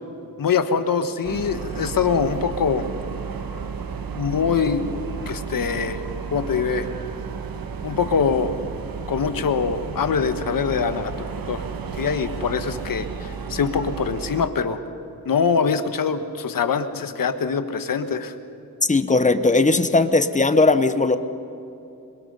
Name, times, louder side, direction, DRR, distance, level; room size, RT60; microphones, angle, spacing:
voice 1, 0.4-2.9 4.1-4.9 5.3-6.0 6.3-6.9 7.8-8.6 9.1-11.1 11.5-11.6 11.9-14.8 15.2-18.3, left 6 dB, 70° left, 9 dB, 1.4 m, -23 dB
sound 1, 1.2-14.5, right 6 dB, 75° right, 1.4 m, -33 dB
voice 2, 18.9-21.2, left 3 dB, 20° left, 10 dB, 1.0 m, -18 dB
27.0 x 22.0 x 5.5 m, 2.9 s
wide cardioid pair, 100°, 35 cm